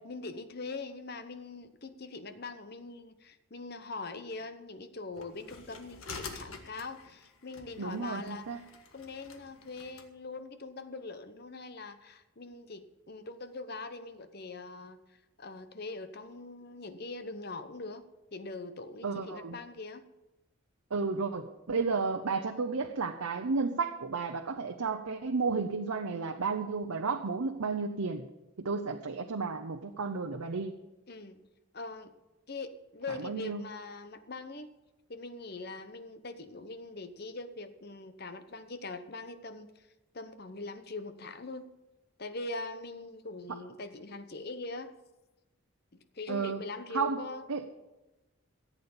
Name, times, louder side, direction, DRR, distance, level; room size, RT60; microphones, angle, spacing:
voice 1, 0.0-8.6 8.9-18.0 18.3-20.0 31.1-31.4 31.7-32.1 32.5-34.7 35.1-39.9 40.1-41.7 42.2-44.9 45.9-47.4, left 3 dB, 45° left, 10 dB, 0.9 m, -42 dB
sound 1, 5.2-10.1, left 4 dB, 75° left, 1.6 m, -47 dB
voice 2, 7.8-8.6 19.0-19.6 20.9-28.3 28.6-30.7 33.2-33.6 46.3-46.6 46.9-47.2 47.5-47.7, right 4 dB, 90° right, 5 dB, 0.8 m, -32 dB
14.0 x 8.4 x 7.1 m, 1.0 s
head